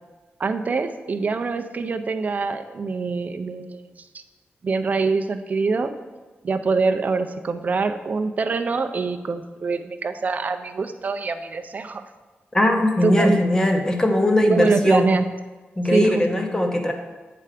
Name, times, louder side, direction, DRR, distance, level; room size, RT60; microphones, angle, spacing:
voice 1, 0.4-4.2 4.6-5.9 6.4-12.0 13.0-13.4 14.4-15.3 15.9-16.2, right 4 dB, 40° right, 8 dB, 0.4 m, -24 dB
voice 2, 12.5-15.1 15.8-16.9, left 1 dB, 15° left, 4 dB, 0.7 m, -20 dB
8.5 x 3.3 x 4.9 m, 1.3 s
wide cardioid pair, 165°, 4 cm